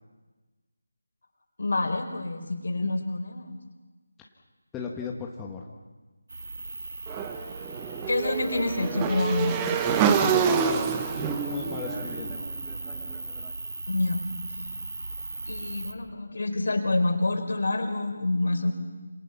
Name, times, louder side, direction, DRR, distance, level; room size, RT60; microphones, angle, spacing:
voice 1, 1.6-3.6 8.1-9.7 13.9-14.7 15.5-18.7, left 2 dB, 60° left, 5 dB, 4.5 m, -27 dB
voice 2, 4.7-5.7 9.9-10.9 11.2-12.5, left 5 dB, 10° left, -2 dB, 1.7 m, -36 dB
sound 1, 6.3-15.9, right 2 dB, 65° right, 2.2 m, -38 dB
Motorcycle / Engine, 7.1-13.2, right 7 dB, 15° right, 1.3 m, -27 dB
27.5 x 27.5 x 5.9 m, 1.3 s
figure-of-eight pair, 160°, 0 cm